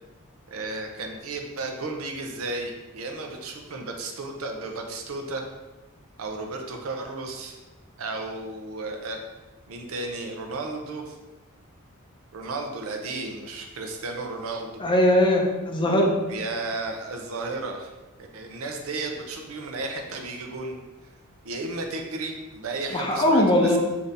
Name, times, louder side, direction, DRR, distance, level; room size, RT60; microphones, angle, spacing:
voice 1, 0.5-5.4 6.2-7.6 8.0-9.2 9.7-11.1 12.3-14.8 16.3-17.9 18.2-20.8 21.4-23.8, right 3 dB, 70° right, 3 dB, 0.5 m, -33 dB
voice 2, 14.8-16.1 22.9-23.8, left 1 dB, 25° left, 1 dB, 0.5 m, -20 dB
3.4 x 2.7 x 3.9 m, 1.1 s
head